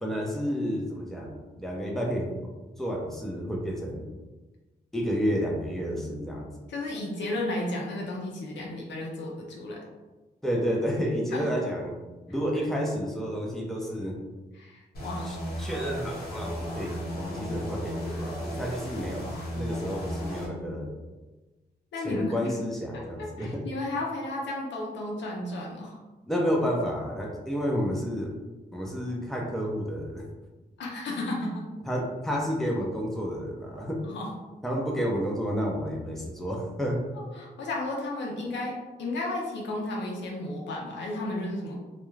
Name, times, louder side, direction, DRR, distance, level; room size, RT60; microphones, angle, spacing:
voice 1, 0.0-2.3 2.8-4.0 4.9-6.5 10.4-11.9 12.3-14.2 15.2-20.9 22.0-23.7 26.3-28.3 28.7-30.2 31.9-34.0 34.6-37.0, equal, ahead, -1 dB, 0.6 m, -30 dB
voice 2, 6.7-9.8 11.3-11.4 14.5-15.3 21.9-22.5 22.9-26.0 30.8-31.7 34.0-34.3 37.4-41.8, left 2 dB, 85° left, -2 dB, 0.7 m, -33 dB
sound 1, 14.9-20.5, equal, 60° left, 1.0 m, -35 dB
2.4 x 2.2 x 3.2 m, 1.2 s
cardioid pair, 65°, 18 cm